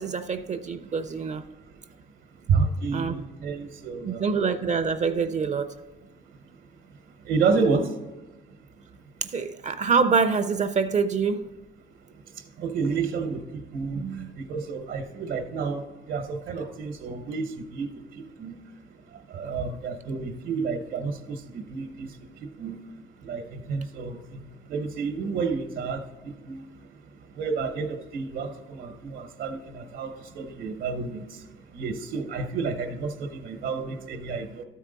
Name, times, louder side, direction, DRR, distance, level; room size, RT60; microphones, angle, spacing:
voice 1, 0.0-1.4 2.9-3.2 4.0-5.7 9.2-11.4 14.0-14.3, right 5 dB, 35° right, 11 dB, 0.4 m, -25 dB
voice 2, 2.5-4.3 7.3-7.9 12.6-14.0 14.4-17.9 18.4-18.5 19.3-22.1 22.6-22.8 23.2-24.2 24.7-26.6 27.4-31.2 31.7-34.6, right 5 dB, 80° right, 5 dB, 0.9 m, -30 dB
12.5 x 4.6 x 3.8 m, 1.2 s
cardioid pair, 90°, 20 cm